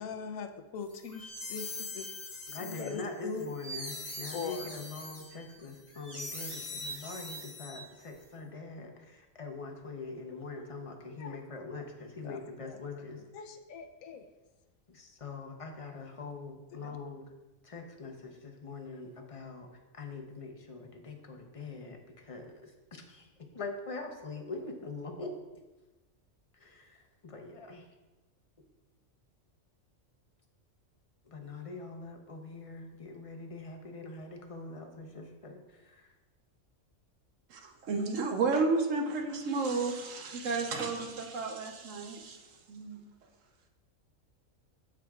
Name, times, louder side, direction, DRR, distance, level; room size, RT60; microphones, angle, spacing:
voice 1, 0.0-3.5 4.3-4.9 10.3-10.4 11.2-11.4 12.2-14.3 16.7-17.0, left 5 dB, 85° left, 9 dB, 1.0 m, -42 dB
sound 1, 0.9-8.2, left 1 dB, 10° left, 1.1 m, -42 dB
voice 2, 2.5-13.2 14.9-17.2 17.6-19.7 19.9-23.3 23.5-25.3 26.5-27.9 31.3-36.1, left 3 dB, 30° left, 3 dB, 0.7 m, -43 dB
voice 3, 37.5-43.0, right 4 dB, 70° right, 4 dB, 1.2 m, -32 dB
13.5 x 4.8 x 2.4 m, 1.1 s
omnidirectional pair, 1.4 m